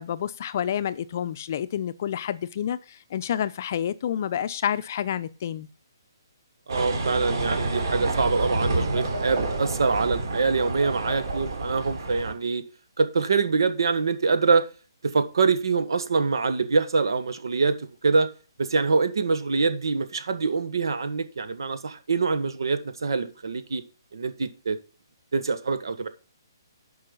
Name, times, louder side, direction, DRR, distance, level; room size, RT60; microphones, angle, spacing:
voice 1, 0.0-5.7, left 9 dB, 40° left, 0.6 m, -29 dB
sound 1, 6.7-12.3, right 2 dB, 55° right, 3.1 m, -29 dB
voice 2, 6.7-12.6 13.0-14.7 15.0-18.3 18.6-23.8 24.1-24.8 25.3-26.1, right 4 dB, 75° right, 1.4 m, -24 dB
9.9 x 5.5 x 5.4 m
hypercardioid pair, 165°, 2 cm